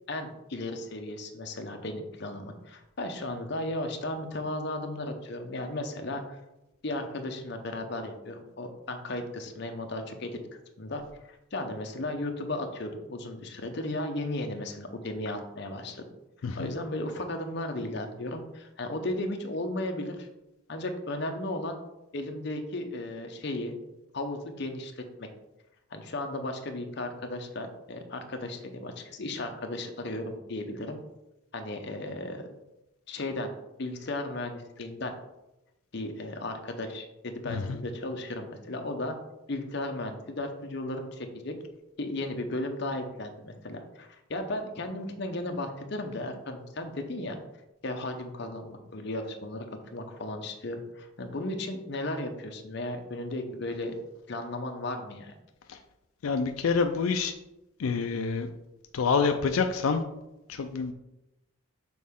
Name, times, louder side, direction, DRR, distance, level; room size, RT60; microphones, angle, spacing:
voice 1, 0.1-6.2 6.8-10.4 10.8-11.0 11.3-16.0 16.6-20.3 20.7-21.8 22.1-23.8 24.1-25.3 25.9-31.0 31.5-32.5 33.1-33.5 33.8-35.1 35.9-39.2 39.5-41.5 42.0-47.4 47.8-53.9 54.3-55.3, left 1 dB, 55° left, 4 dB, 0.8 m, -35 dB
voice 2, 37.5-37.8 55.7-55.8 56.2-57.3 57.8-58.5 58.9-60.0 60.5-60.9, left 5 dB, 85° left, 6 dB, 0.4 m, -27 dB
6.3 x 4.2 x 3.6 m, 0.93 s
head